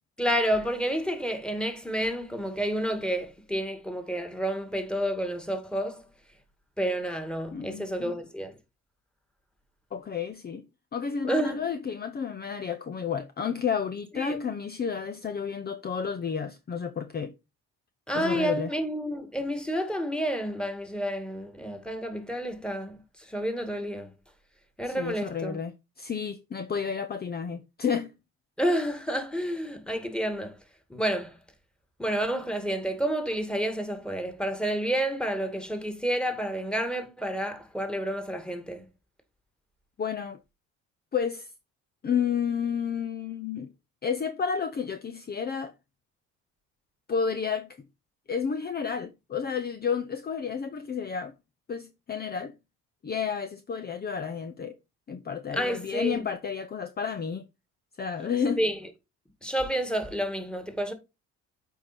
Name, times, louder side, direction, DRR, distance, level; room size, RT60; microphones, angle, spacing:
voice 1, 0.2-6.1 6.8-8.5 11.3-11.6 14.1-14.4 18.1-24.1 24.8-25.6 28.6-30.6 30.9-31.4 32.0-38.9 55.5-56.2 58.6-58.8 59.4-60.9, right 1 dB, 5° left, 2.1 m, -30 dB
voice 2, 7.5-8.2 9.9-10.7 10.9-17.3 18.1-18.7 24.9-25.7 26.0-28.1 40.0-40.4 41.1-41.5 42.0-43.7 44.0-45.7 47.1-47.8 48.3-51.3 51.7-52.5 53.0-54.8 55.1-57.4 58.0-58.6, left 6 dB, 30° left, 0.8 m, -31 dB
8.1 x 4.7 x 4.3 m
supercardioid pair, 80°, 30 cm